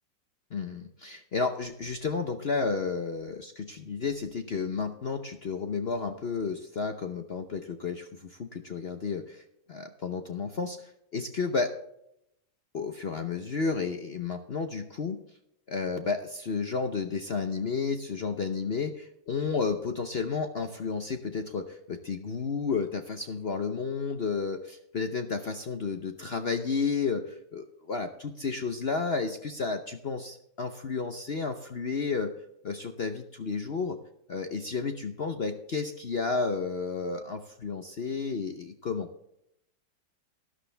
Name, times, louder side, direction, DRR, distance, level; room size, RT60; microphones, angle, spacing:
voice 1, 0.5-9.4 9.7-11.7 12.7-15.2 15.7-32.3 32.6-34.0 34.3-39.1, left 4 dB, 55° left, 6 dB, 0.7 m, -32 dB
12.5 x 12.0 x 3.4 m, 0.78 s
omnidirectional pair, 2.1 m